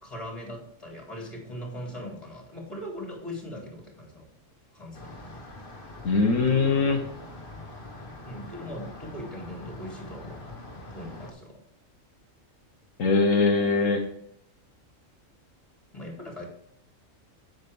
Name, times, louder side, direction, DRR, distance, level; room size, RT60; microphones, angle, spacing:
voice 1, 0.0-4.3 4.7-5.2 8.2-10.4 10.9-11.6 15.9-16.5, equal, 20° left, -2 dB, 3.5 m, -40 dB
sound 1, 4.9-11.3, left 2 dB, 40° left, 1.6 m, -43 dB
voice 2, 6.0-7.1 13.0-14.0, left 4 dB, 75° left, 2 dB, 1.4 m, -22 dB
8.4 x 8.2 x 3.4 m, 0.70 s
omnidirectional pair, 1.4 m